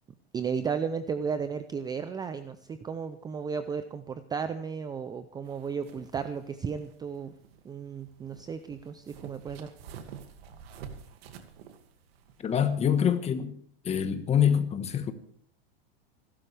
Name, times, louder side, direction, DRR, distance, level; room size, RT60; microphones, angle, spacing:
voice 1, 0.3-7.3 7.6-9.7, right 6 dB, 15° right, 0.5 m, -34 dB
sound 1, 5.5-12.6, right 7 dB, 70° right, 2.3 m, -49 dB
voice 2, 12.4-13.6 13.8-15.1, left 8 dB, 20° left, 1.3 m, -25 dB
26.5 x 12.5 x 3.4 m
supercardioid pair, 140°, 30 cm